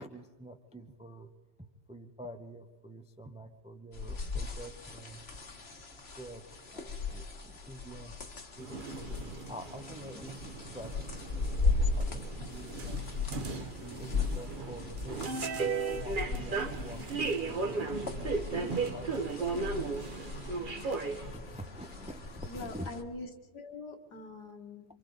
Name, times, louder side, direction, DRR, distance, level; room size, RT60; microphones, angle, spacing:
voice 1, 0.0-1.3 1.6-5.2 6.2-8.2 8.6-11.0 11.4-13.0 13.6-19.1 21.3-22.9, right 1 dB, 10° right, 6 dB, 0.3 m, -47 dB
sound 1, 3.9-23.0, left 3 dB, 40° left, 1.4 m, -37 dB
sound 2, 8.6-21.3, right 4 dB, 35° right, 1.0 m, -36 dB
voice 2, 22.4-24.8, left 2 dB, 65° left, 4 dB, 2.2 m, -44 dB
27.5 x 24.5 x 4.0 m, 1.3 s
omnidirectional pair, 1.9 m